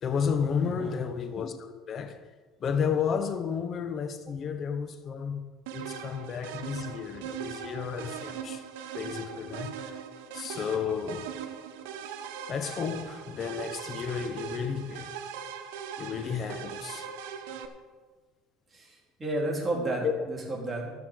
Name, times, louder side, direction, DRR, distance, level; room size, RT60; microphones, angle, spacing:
voice 1, 0.0-2.2 2.6-5.4 5.7-8.6 8.9-10.0 10.3-11.4 12.5-15.1 16.0-17.1 20.0-20.1, left 7 dB, 40° left, 0.9 m, -32 dB
voice 2, 0.6-1.0 18.7-20.9, right 2 dB, 20° right, 3.3 m, -32 dB
sound 1, 5.7-17.7, right 8 dB, 85° right, 1.0 m, -40 dB
12.5 x 5.9 x 7.7 m
supercardioid pair, 110°, 0 cm